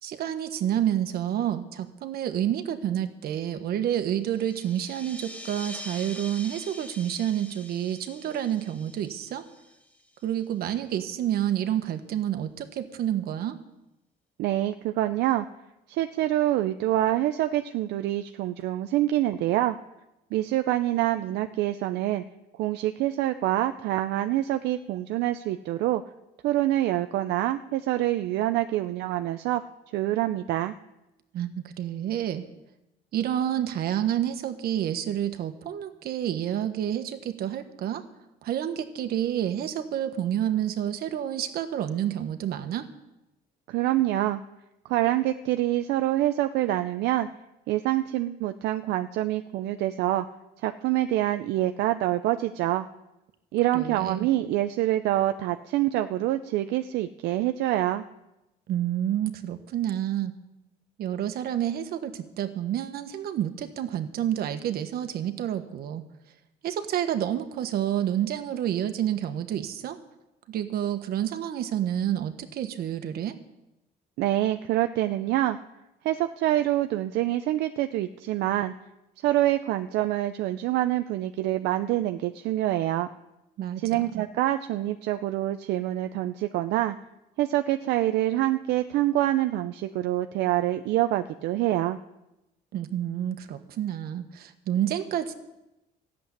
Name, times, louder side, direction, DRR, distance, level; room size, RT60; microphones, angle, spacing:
voice 1, 0.0-9.4 10.2-13.6 31.3-32.4 33.1-38.0 38.4-42.9 53.7-54.3 58.7-60.3 61.0-66.0 66.6-70.0 70.5-73.4 83.6-84.2 92.7-95.3, right 10 dB, 65° right, 9 dB, 1.4 m, -29 dB
sound 1, 4.2-10.4, equal, 10° left, 1.2 m, -44 dB
voice 2, 14.4-15.5 15.9-19.8 20.3-22.2 22.6-26.0 26.4-29.6 29.9-30.7 43.7-44.4 44.9-47.3 47.7-50.3 50.6-52.9 53.5-58.0 74.2-75.6 76.0-78.7 79.2-83.1 83.8-87.0 87.4-92.0, right 14 dB, 85° right, 8 dB, 0.6 m, -26 dB
14.0 x 7.7 x 9.8 m, 0.94 s
cardioid pair, 110°, 17 cm